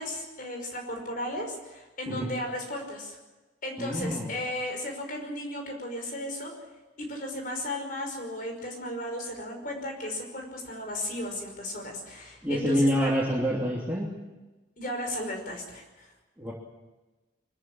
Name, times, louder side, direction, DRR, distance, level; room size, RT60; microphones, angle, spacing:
voice 1, 0.0-3.2 3.6-6.5 7.0-13.1 14.8-16.1, left 1 dB, 45° left, 3 dB, 5.5 m, -35 dB
voice 2, 3.8-4.3 12.4-14.1 16.4-16.5, equal, 10° right, -5 dB, 3.0 m, -26 dB
25.0 x 14.0 x 8.7 m, 1.2 s
head